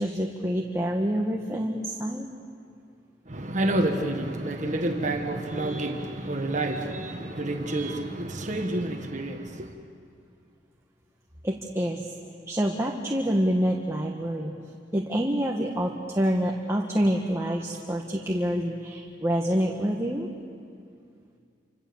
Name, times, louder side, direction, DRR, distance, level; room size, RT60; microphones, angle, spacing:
voice 1, 0.0-2.3 11.4-12.0 12.5-14.5 14.9-20.3, equal, 15° right, 0 dB, 1.4 m, -27 dB
voice 2, 3.3-9.7, right 1 dB, 40° right, 3 dB, 1.6 m, -29 dB
29.0 x 26.0 x 7.1 m, 2.3 s
head